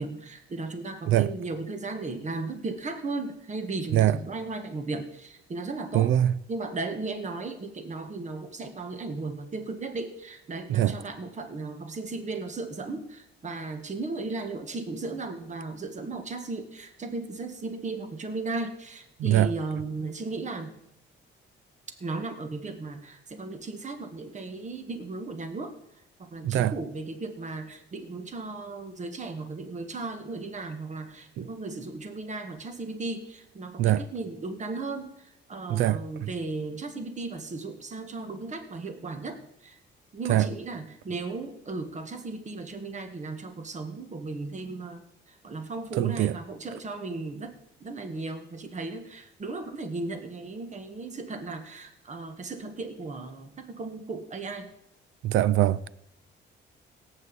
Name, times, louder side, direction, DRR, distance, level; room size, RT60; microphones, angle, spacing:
voice 1, 0.0-6.2 6.5-20.8 22.0-25.8 26.2-39.8 40.1-45.0 45.3-47.5 47.8-54.7, right 3 dB, 35° right, 1.5 m, -36 dB
voice 2, 5.9-6.3 10.7-10.9 19.2-19.5 26.4-26.7 31.4-31.5 33.8-34.0 35.7-36.3 40.3-40.5 46.0-46.4 55.2-55.9, right 13 dB, 80° right, 0.5 m, -23 dB
17.5 x 8.2 x 4.1 m
cardioid pair, 90°, 20 cm